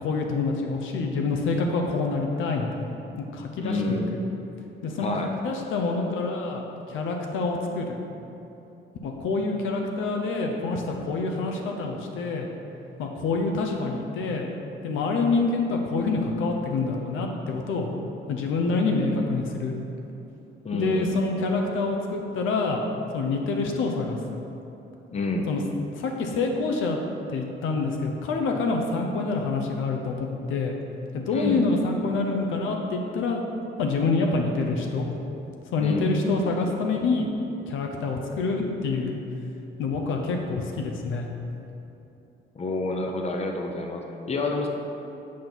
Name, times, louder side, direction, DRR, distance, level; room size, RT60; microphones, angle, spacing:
voice 1, 0.0-2.9 3.3-4.0 4.8-5.1 5.4-6.6 6.9-8.0 9.0-12.5 13.0-14.5 14.8-17.9 18.3-19.7 20.7-22.8 23.1-24.4 25.5-25.6 26.0-27.0 27.3-30.7 31.1-33.4 33.8-35.1 35.7-37.3 37.7-39.2 39.8-41.3, left 3 dB, 80° left, 2 dB, 0.7 m, -26 dB
voice 2, 3.6-4.2 5.0-5.3 20.6-21.1 25.1-25.5 31.3-31.7 35.8-36.1 42.5-44.7, left 2 dB, 30° left, 2 dB, 0.7 m, -28 dB
7.3 x 4.5 x 3.9 m, 2.9 s
cardioid pair, 90°, 20 cm